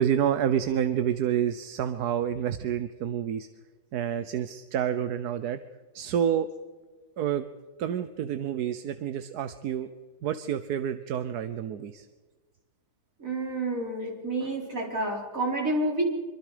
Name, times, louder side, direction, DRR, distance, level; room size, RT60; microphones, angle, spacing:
voice 1, 0.0-3.5 3.9-5.6 5.9-6.5 7.2-7.4 7.8-9.9 10.2-12.1, right 9 dB, 60° right, 11 dB, 1.3 m, -28 dB
voice 2, 13.2-16.0, right 2 dB, 45° right, -1 dB, 5.0 m, -29 dB
26.0 x 24.0 x 5.1 m, 1.3 s
omnidirectional pair, 2.0 m